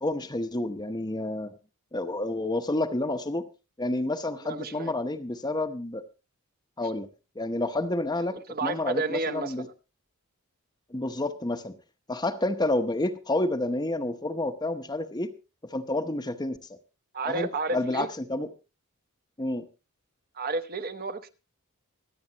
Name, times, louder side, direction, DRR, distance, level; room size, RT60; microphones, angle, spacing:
voice 1, 0.0-1.5 1.9-3.5 3.8-6.1 6.8-7.1 7.4-9.7 10.9-11.7 12.1-15.3 15.6-16.6 17.3-18.5 19.4-19.7, left 2 dB, 20° left, 7 dB, 0.8 m, -29 dB
voice 2, 4.5-4.9 8.3-9.7 17.1-18.1 20.3-21.3, right 3 dB, 40° right, 9 dB, 1.0 m, -31 dB
25.0 x 8.5 x 2.9 m, 0.29 s
head